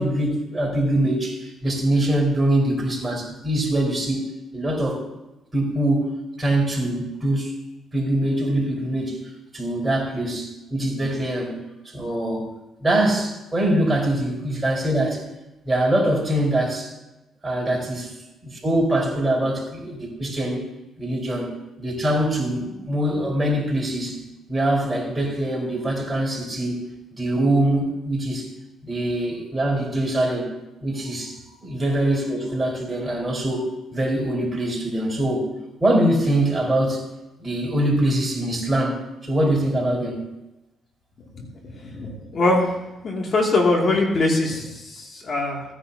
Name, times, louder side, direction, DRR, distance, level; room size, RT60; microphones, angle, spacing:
voice 1, 0.0-4.2 4.5-5.0 5.5-6.1 6.4-7.5 7.9-9.2 9.5-11.6 11.8-12.5 12.8-15.2 15.6-16.9 17.4-18.1 18.4-20.6 21.0-24.2 24.5-28.5 28.8-30.5 30.8-35.5 35.8-37.0 37.4-40.2, right 1 dB, 20° right, -1 dB, 5.0 m, -23 dB
voice 2, 41.3-42.8 43.0-45.6, left 2 dB, 50° left, -1 dB, 2.7 m, -22 dB
18.5 x 10.0 x 2.9 m, 1.0 s
cardioid pair, 90°, 0 cm